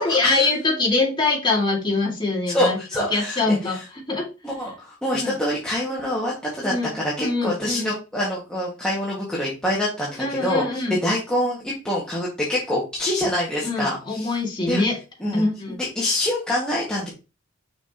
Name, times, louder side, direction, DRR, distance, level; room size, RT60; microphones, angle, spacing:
voice 1, 0.0-4.3 5.1-5.3 6.6-7.9 10.2-11.0 13.6-15.0 15.3-15.8, left 3 dB, 25° left, -2 dB, 2.2 m, -24 dB
voice 2, 2.5-3.4 4.4-10.6 11.0-14.3 14.7-14.8 15.2-15.5 15.9-17.1, left 1 dB, 5° left, -6 dB, 1.8 m, -25 dB
6.2 x 6.0 x 2.9 m, 0.30 s
head